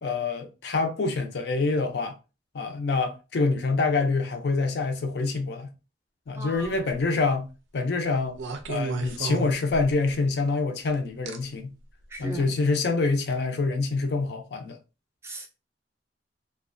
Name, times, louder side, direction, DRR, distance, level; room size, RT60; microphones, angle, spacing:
voice 1, 0.0-2.2 2.5-5.7 6.3-7.5 7.7-8.4 8.7-11.7 12.2-14.8, left 3 dB, 60° left, 0.4 m, -26 dB
voice 2, 6.4-6.9 12.1-12.5 15.2-15.5, right 1 dB, 15° right, 0.3 m, -37 dB
sound 1, 6.5-7.0 8.4-10.1 11.3-11.4 12.2-12.4, right 3 dB, 85° right, 0.4 m, -32 dB
2.4 x 2.2 x 2.4 m
head